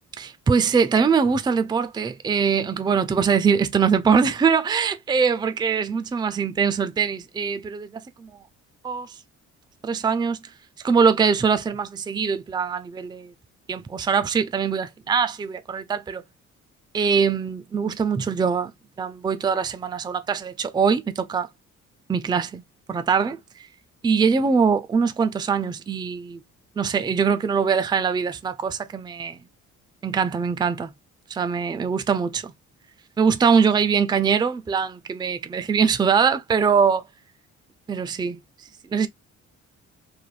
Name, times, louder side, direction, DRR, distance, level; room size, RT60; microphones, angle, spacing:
voice 1, 0.2-8.3 8.8-9.1 9.8-10.4 10.8-13.3 13.7-16.2 16.9-18.7 19.0-21.5 22.1-22.6 22.9-23.4 24.0-26.4 26.8-29.4 30.0-30.9 31.3-32.5 33.2-37.0 37.9-38.4 38.9-39.1, right 6 dB, 15° right, 0.4 m, -22 dB
3.3 x 2.1 x 2.4 m
cardioid pair, 90°, 30 cm